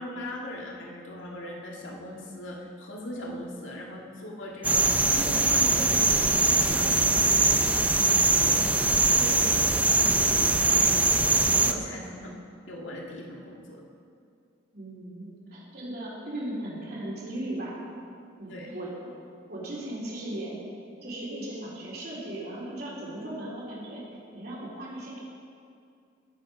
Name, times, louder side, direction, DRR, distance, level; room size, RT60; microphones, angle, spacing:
voice 1, 0.0-8.7 9.0-13.8 18.5-18.7, left 1 dB, 80° left, -1 dB, 1.9 m, -39 dB
sound 1, 4.6-11.7, right 3 dB, 10° right, 0.4 m, -22 dB
voice 2, 14.7-17.8 18.4-19.1 19.5-20.7 21.0-24.0 24.3-25.2, right 1 dB, 55° right, -6 dB, 3.8 m, -37 dB
18.5 x 7.5 x 5.2 m, 2.4 s
head